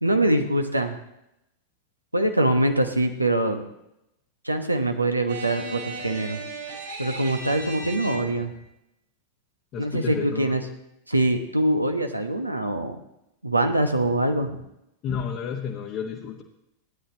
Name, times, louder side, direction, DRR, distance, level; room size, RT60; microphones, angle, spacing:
voice 1, 0.0-1.0 2.1-3.7 4.4-6.4 7.0-8.5 9.8-10.6 11.1-13.0 13.4-14.6, right 1 dB, 85° right, 5 dB, 1.1 m, -23 dB
sound 1, 5.3-8.5, right 3 dB, 60° right, 4.0 m, -36 dB
voice 2, 9.7-10.6 15.0-16.4, left 7 dB, 35° left, -1 dB, 1.1 m, -31 dB
16.0 x 10.0 x 2.9 m, 0.84 s
figure-of-eight pair, 90°, 0 cm